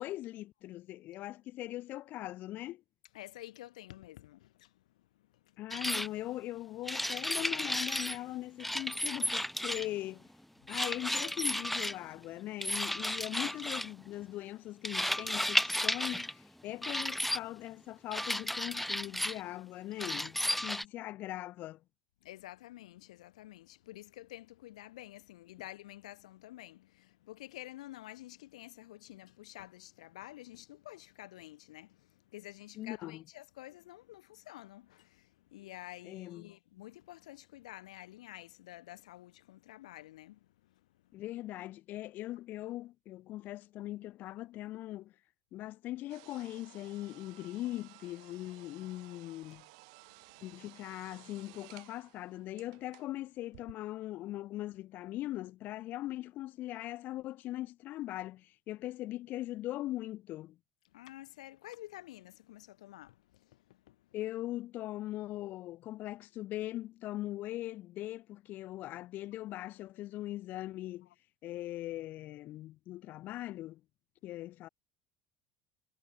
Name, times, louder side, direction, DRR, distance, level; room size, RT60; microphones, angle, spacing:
voice 1, 0.0-2.8 5.6-10.3 10.7-21.8 32.7-33.2 36.0-36.5 41.1-45.1 45.5-49.6 50.4-60.6 64.1-71.1 71.4-73.8 74.2-74.7, left 15 dB, 55° left, 6.2 m, -40 dB
voice 2, 3.1-4.8 5.1-5.6 10.6-10.8 22.2-40.7 41.1-41.2 48.2-48.7 49.0-49.6 60.9-64.1, left 15 dB, 85° left, 2.7 m, -50 dB
sound 1, 5.7-6.1 6.9-8.2 8.6-10.0 10.7-12.0 12.6-13.9 14.8-16.3 16.8-17.4 18.1-19.4 20.0-20.8, left 1 dB, 5° left, 0.6 m, -33 dB
sound 2, 46.1-53.1 53.5-53.7, right 28 dB, 75° right, 4.4 m, -57 dB
hypercardioid pair, 80°, 4 cm